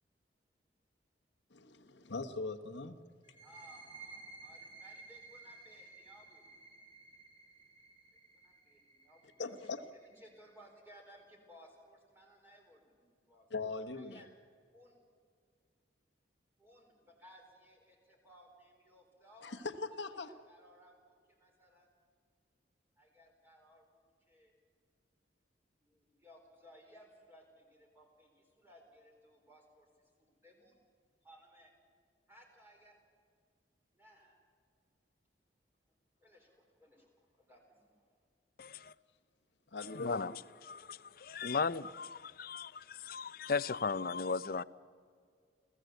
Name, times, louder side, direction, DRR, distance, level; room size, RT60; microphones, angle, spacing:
voice 1, 1.5-3.0 9.4-9.8 13.5-14.2 19.4-20.4 39.7-40.3, left 3 dB, 70° left, 1.2 m, -40 dB
sound 1, 3.2-10.7, right 3 dB, 30° right, 2.6 m, -55 dB
voice 2, 3.4-6.5 8.1-9.5 10.0-13.5 13.9-14.3 14.7-15.0 16.6-19.6 20.2-21.9 23.0-24.5 25.8-30.8 31.2-31.7 32.3-33.0 33.9-34.4 36.2-38.1, equal, 10° right, 4.3 m, -61 dB
voice 3, 38.6-38.9 39.9-40.3 40.6-44.6, left 5 dB, 50° left, 0.5 m, -36 dB
29.0 x 15.5 x 8.0 m
head